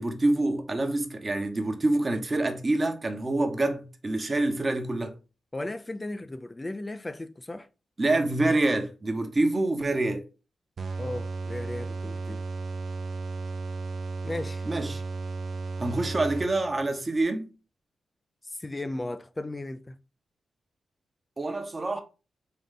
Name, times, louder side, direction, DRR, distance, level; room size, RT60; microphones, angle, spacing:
voice 1, 0.0-5.1 8.0-10.3 14.6-15.0 15.8-17.5 21.4-22.0, right 2 dB, 35° right, 0.9 m, -26 dB
voice 2, 5.5-7.7 11.0-12.4 14.2-14.6 18.6-20.0, left 2 dB, 25° left, 0.3 m, -36 dB
sound 1, 10.8-16.9, right 3 dB, 65° right, 0.6 m, -34 dB
3.8 x 2.5 x 3.7 m
supercardioid pair, 40°, 0 cm